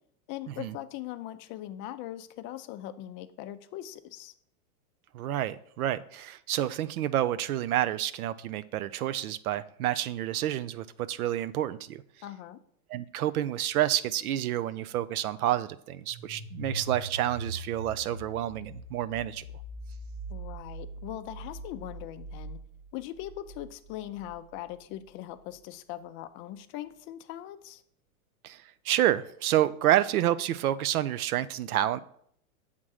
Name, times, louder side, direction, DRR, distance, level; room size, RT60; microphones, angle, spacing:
voice 1, 0.3-4.3 12.2-12.6 20.3-22.6 22.9-27.8, left 13 dB, 30° left, 11 dB, 0.4 m, -40 dB
voice 2, 5.1-12.0 12.9-19.4 28.4-32.0, right 12 dB, 80° right, 14 dB, 0.6 m, -29 dB
sound 1, 16.1-24.8, right 2 dB, 65° right, 1.3 m, -42 dB
7.4 x 3.7 x 6.3 m, 0.66 s
hypercardioid pair, 115°, 43 cm